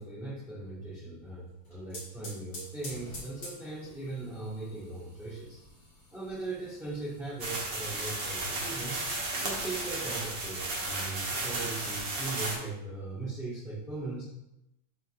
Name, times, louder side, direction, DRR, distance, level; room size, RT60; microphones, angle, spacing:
voice 1, 0.0-5.6 6.1-9.0 9.4-14.2, right 3 dB, ahead, -10 dB, 1.2 m, -39 dB
sound 1, 1.5-12.1, left 1 dB, 55° left, 2.8 m, -50 dB
sound 2, 7.4-12.5, right 2 dB, 55° right, 2.1 m, -34 dB
10.5 x 3.9 x 2.5 m, 0.88 s
omnidirectional pair, 2.4 m